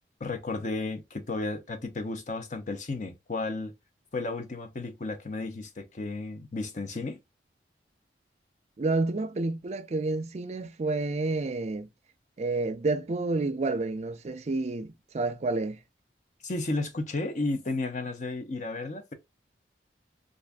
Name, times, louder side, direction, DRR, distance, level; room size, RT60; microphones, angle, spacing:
voice 1, 0.2-3.7 4.1-7.2 16.4-19.1, left 2 dB, 45° left, 0.7 m, -33 dB
voice 2, 8.8-11.9 12.4-15.8, right 3 dB, 40° right, 0.4 m, -29 dB
2.5 x 2.5 x 3.4 m
head